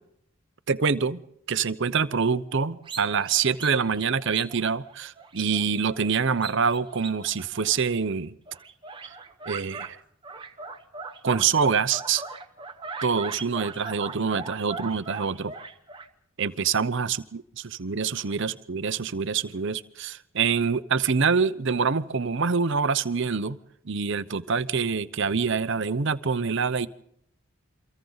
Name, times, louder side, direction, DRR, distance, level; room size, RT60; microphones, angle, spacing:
voice 1, 0.7-1.2 1.5-8.3 9.5-10.0 11.2-12.2 13.0-15.5 16.4-23.6 23.9-26.9, right 5 dB, 55° right, 0.7 m, -25 dB
sound 1, 2.8-8.1 8.5-9.9 10.2-16.1, right 4 dB, 20° right, 1.0 m, -40 dB
29.0 x 24.0 x 4.0 m
head